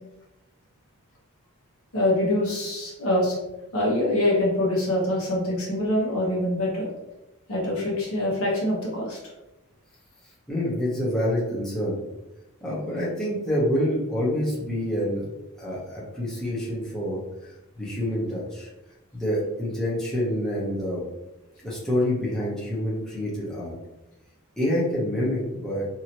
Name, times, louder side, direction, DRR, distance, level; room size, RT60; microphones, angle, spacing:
voice 1, 1.9-3.3 3.7-6.9 7.5-9.2, left 1 dB, 70° left, -3 dB, 1.1 m, -24 dB
voice 2, 10.5-12.0 12.6-15.3 15.6-17.2 17.8-18.7 19.1-21.0 21.6-23.7 24.6-25.9, equal, ahead, -8 dB, 0.8 m, -27 dB
2.9 x 2.7 x 2.9 m, 0.98 s
head